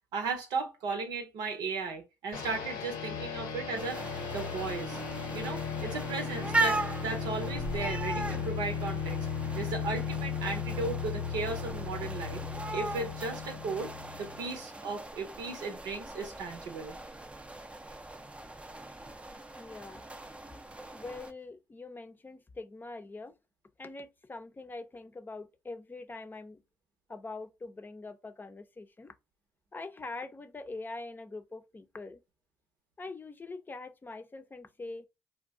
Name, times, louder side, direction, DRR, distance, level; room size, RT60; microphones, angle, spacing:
voice 1, 0.1-4.0 4.3-5.0 5.3-9.3 9.5-12.4 12.7-17.0, right 4 dB, 80° right, 0.8 m, -36 dB
sound 1, 2.3-14.5, left 6 dB, 85° left, 0.8 m, -36 dB
sound 2, 3.8-21.3, right 2 dB, 15° right, 0.6 m, -39 dB
voice 2, 19.6-20.0 20.9-23.3 23.8-26.6 27.1-29.1 29.7-32.2 33.0-35.1, left 3 dB, 30° left, 0.6 m, -43 dB
2.4 x 2.2 x 3.6 m
supercardioid pair, 55°, 7 cm